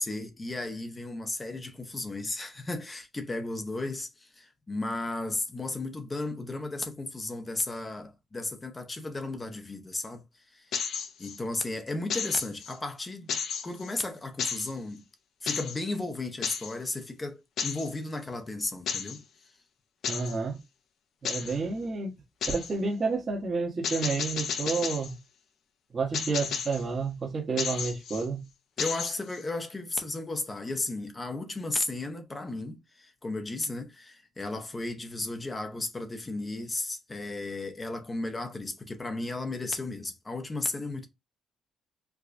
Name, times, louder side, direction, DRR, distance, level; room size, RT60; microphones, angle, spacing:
voice 1, 0.0-10.2 10.5-10.7 11.2-13.4 13.6-15.0 15.4-19.2 28.8-41.1, left 2 dB, 25° left, 0.7 m, -34 dB
sound 1, 10.7-11.4 12.1-12.8 13.3-13.9 14.4-14.7 15.5-15.8 16.4-16.7 17.6-17.9 18.9-19.2 20.0-20.4 21.3-21.6 22.4-22.7 23.8-25.1 26.1-26.8 27.6-28.3 28.8-29.4, left 7 dB, 70° left, 0.5 m, -33 dB
voice 2, 20.1-20.6 21.2-22.1 22.5-25.2 25.9-28.4, right 4 dB, 40° right, 1.1 m, -30 dB
4.7 x 2.2 x 2.5 m
cardioid pair, 90°, 0 cm